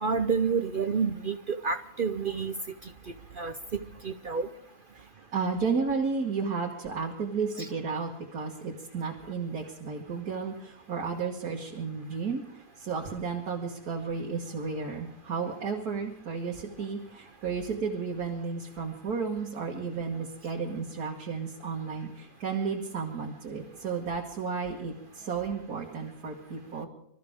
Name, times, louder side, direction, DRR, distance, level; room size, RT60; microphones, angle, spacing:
voice 1, 0.0-2.5 3.4-4.5 7.6-7.7, right 5 dB, 50° right, 9 dB, 0.6 m, -29 dB
voice 2, 4.9-26.9, right 5 dB, 75° right, -1 dB, 2.1 m, -33 dB
26.0 x 13.5 x 3.6 m, 0.74 s
omnidirectional pair, 1.6 m